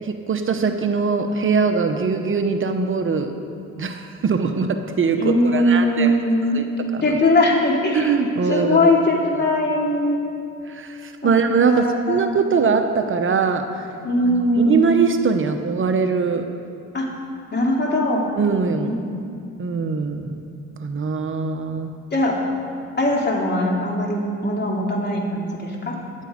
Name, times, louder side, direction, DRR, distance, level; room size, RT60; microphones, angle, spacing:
voice 1, 0.0-3.3 3.8-6.2 6.5-7.1 7.9-8.9 10.7-13.9 14.2-16.5 18.4-18.9 19.6-20.4 20.8-21.9, right 5 dB, 45° right, 6 dB, 0.9 m, -22 dB
voice 2, 5.2-6.6 7.0-10.2 11.2-11.3 11.7-12.3 14.0-14.9 16.9-17.1 17.5-18.2 18.9-19.0 22.1-22.3 23.0-25.9, left 1 dB, 35° left, -2 dB, 2.7 m, -20 dB
13.5 x 10.5 x 5.1 m, 2.5 s
cardioid pair, 90°, 30 cm